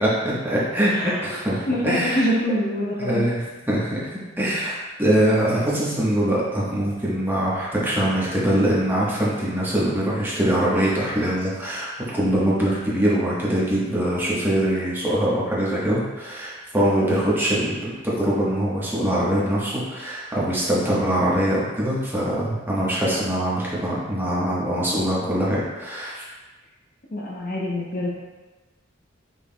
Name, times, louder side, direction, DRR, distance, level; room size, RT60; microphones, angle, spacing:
voice 1, 0.0-2.2 3.0-26.2, right 1 dB, 10° right, -7 dB, 1.1 m, -23 dB
voice 2, 0.9-1.4 1.7-3.2 17.0-17.3 27.1-28.1, equal, 45° left, -3 dB, 0.8 m, -25 dB
5.4 x 4.5 x 2.2 m, 1.2 s
head